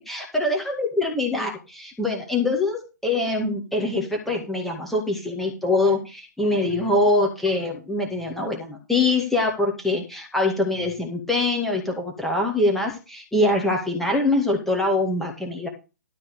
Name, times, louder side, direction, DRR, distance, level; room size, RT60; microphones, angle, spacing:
voice 1, 0.0-15.7, left 2 dB, ahead, 1 dB, 1.9 m, -24 dB
12.5 x 4.3 x 6.9 m, 0.30 s
figure-of-eight pair, 125°, 10 cm